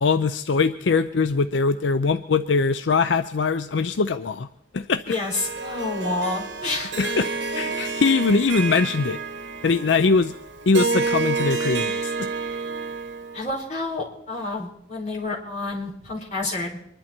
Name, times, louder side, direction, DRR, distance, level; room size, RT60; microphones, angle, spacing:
voice 1, 0.0-4.5 4.7-5.2 7.0-7.3 7.6-9.2 9.6-10.3 10.7-12.3, left 4 dB, 80° left, 11 dB, 0.6 m, -22 dB
voice 2, 5.1-6.9 13.3-16.8, left 2 dB, 40° left, -3 dB, 4.5 m, -29 dB
Harp, 5.1-13.5, right 4 dB, 80° right, 1.6 m, -29 dB
24.5 x 11.5 x 4.4 m, 0.72 s
head